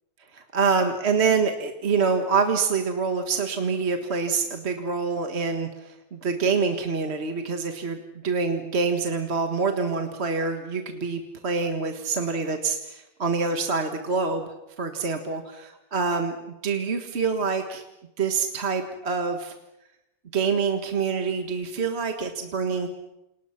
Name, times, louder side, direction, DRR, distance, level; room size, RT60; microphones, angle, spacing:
voice 1, 0.3-8.0 8.2-15.4 15.9-17.8 18.2-19.5 20.3-22.9, right 5 dB, 35° right, 5 dB, 1.7 m, -26 dB
29.5 x 28.5 x 5.9 m, 0.93 s
omnidirectional pair, 2.0 m